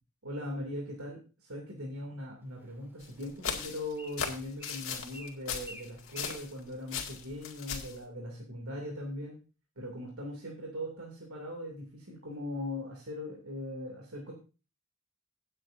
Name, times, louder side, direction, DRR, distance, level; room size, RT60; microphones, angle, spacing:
voice 1, 0.2-9.4 9.8-14.3, left 1 dB, 85° right, -1 dB, 2.7 m, -40 dB
Bird, 2.4-7.6, equal, 10° right, 2.2 m, -54 dB
sound 1, 3.0-6.6 6.9-8.0, left 6 dB, 70° left, 2.1 m, -37 dB
17.0 x 8.7 x 2.6 m, 0.32 s
head